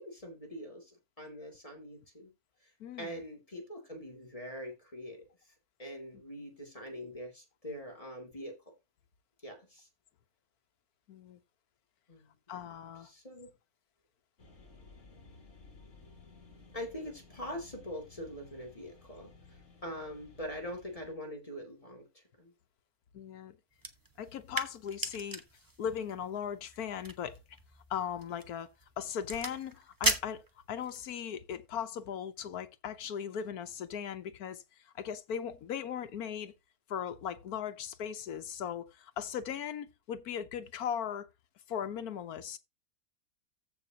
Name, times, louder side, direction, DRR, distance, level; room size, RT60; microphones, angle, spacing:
voice 1, 0.0-2.3 2.6-2.7 3.0-5.2 5.8-8.5 9.4-9.9 12.1-12.3 13.0-13.5 16.7-22.0 22.4-22.5, equal, 25° left, 2.7 m, -43 dB
voice 2, 2.8-3.2 11.1-11.4 12.5-13.1 23.1-23.6 24.2-25.4 25.8-27.4 27.9-28.7 29.0-36.5 36.9-41.3 41.7-42.6, left 8 dB, 85° left, 1.4 m, -38 dB
sound 1, 14.4-21.1, left 4 dB, 55° left, 2.9 m, -56 dB
sound 2, 23.7-31.1, right 2 dB, 15° right, 1.0 m, -38 dB
14.5 x 5.8 x 2.9 m
omnidirectional pair, 1.5 m